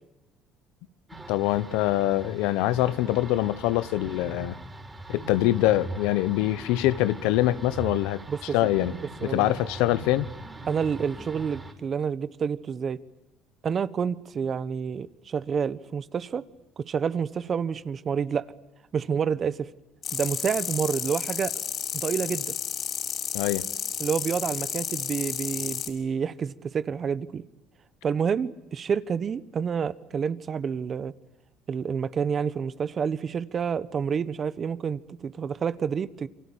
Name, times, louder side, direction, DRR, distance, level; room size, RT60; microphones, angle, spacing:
sound 1, 1.1-11.7, right 2 dB, 15° right, 4.9 m, -41 dB
voice 1, 1.3-4.6 5.1-8.2 8.5-8.9 9.2-10.3 23.3-23.6, left 15 dB, 80° left, 1.1 m, -24 dB
voice 2, 8.3-8.9 9.2-9.5 10.7-13.0 13.6-16.4 16.8-18.5 18.9-19.7 20.1-21.5 21.9-22.5 24.0-27.4 28.0-31.1 31.7-36.3, right 6 dB, 40° right, 1.3 m, -29 dB
sound 2, 20.0-25.9, left 8 dB, 50° left, 5.6 m, -32 dB
28.0 x 24.0 x 8.7 m
supercardioid pair, 85°, 0 cm